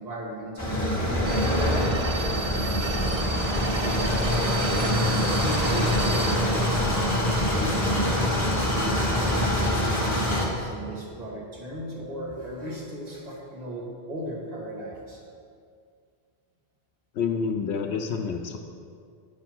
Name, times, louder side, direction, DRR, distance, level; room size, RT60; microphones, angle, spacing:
voice 1, 0.0-6.8 7.6-15.2, equal, 35° right, -4 dB, 1.7 m, -36 dB
sound 1, 0.6-10.5, left 1 dB, 15° left, 1.8 m, -24 dB
sound 2, 1.3-6.4, right 5 dB, 70° right, 0.8 m, -34 dB
voice 2, 17.1-18.6, left 6 dB, 80° left, 4 dB, 0.9 m, -28 dB
10.0 x 5.5 x 6.1 m, 2.2 s
omnidirectional pair, 1.1 m